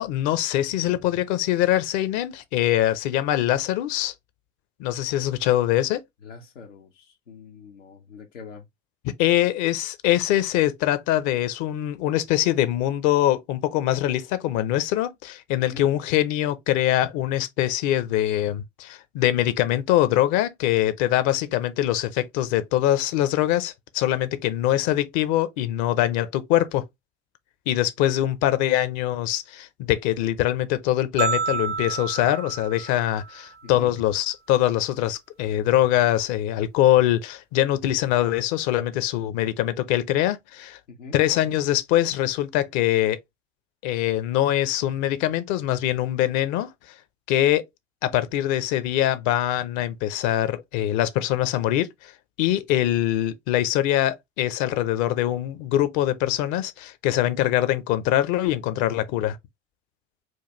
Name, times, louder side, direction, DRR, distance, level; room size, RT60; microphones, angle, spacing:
voice 1, 0.0-4.1 4.8-6.0 9.0-26.8 27.7-40.8 41.1-43.2 43.8-46.7 47.3-47.6 48.0-52.1 52.4-59.4, left 13 dB, 50° left, 0.7 m, -23 dB
voice 2, 6.2-8.7 15.6-15.9 33.6-34.0 40.9-41.2, left 4 dB, 85° left, 0.8 m, -43 dB
sound 1, 31.2-33.5, right 5 dB, 25° right, 0.5 m, -29 dB
4.7 x 2.3 x 3.1 m
hypercardioid pair, 70°, 37 cm